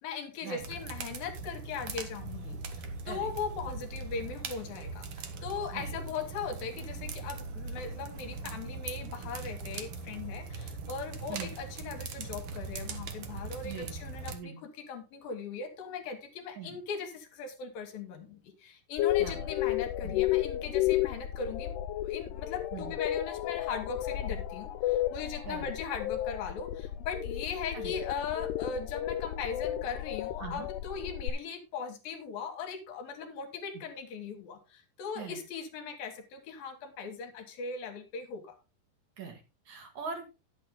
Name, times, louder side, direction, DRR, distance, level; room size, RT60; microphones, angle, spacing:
voice 1, 0.0-21.8 22.0-38.5, left 5 dB, 70° left, 5 dB, 3.1 m, -39 dB
sound 1, 0.6-14.4, right 4 dB, 75° right, 1.2 m, -40 dB
voice 2, 13.6-14.0 14.3-14.6 16.6-16.8 19.2-19.5 20.0-20.2 22.7-22.9 25.4-25.7 27.7-27.9 30.4-30.7 33.7-33.8 35.1-35.4 39.2-40.3, right 6 dB, 55° right, 4 dB, 2.8 m, -42 dB
sound 2, 19.0-31.3, left 13 dB, 90° left, 2.7 m, -32 dB
10.5 x 8.7 x 3.7 m, 0.28 s
omnidirectional pair, 4.6 m